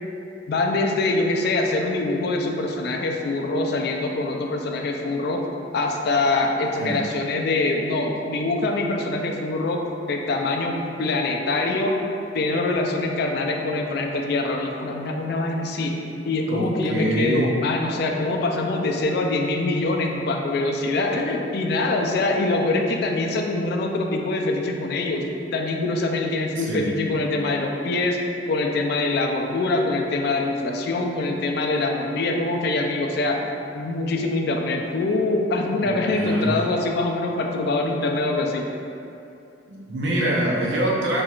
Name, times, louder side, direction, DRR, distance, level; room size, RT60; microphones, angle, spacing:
voice 1, 0.5-5.5 5.7-12.0 12.3-25.2 25.5-28.2 28.5-33.5 33.7-38.7, left 2 dB, 60° left, 2 dB, 0.4 m, -24 dB
voice 2, 16.5-17.5 26.6-26.9 35.8-36.5 39.7-41.2, right 1 dB, 80° right, -4 dB, 0.7 m, -24 dB
4.4 x 3.0 x 2.3 m, 2.7 s
head